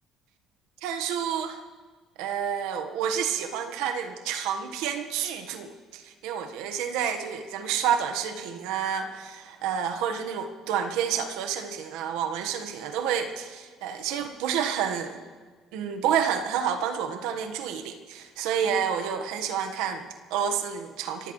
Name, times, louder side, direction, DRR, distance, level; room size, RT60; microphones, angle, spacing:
voice 1, 0.8-1.6 2.2-15.2 15.7-21.3, right 8 dB, 90° right, 6 dB, 1.3 m, -29 dB
29.5 x 15.0 x 3.2 m, 1.4 s
cardioid pair, 135°, 0 cm